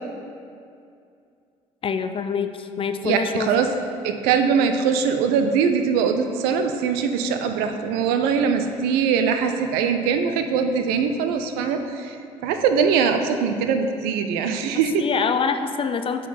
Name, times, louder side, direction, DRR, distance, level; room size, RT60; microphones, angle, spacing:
voice 1, 1.8-3.5 15.0-16.3, left 6 dB, 35° left, 9 dB, 0.4 m, -25 dB
voice 2, 3.0-3.7 4.0-12.2 12.4-15.1, right 6 dB, 75° right, 6 dB, 0.5 m, -22 dB
8.2 x 3.8 x 4.2 m, 2.5 s
hypercardioid pair, 65°, 16 cm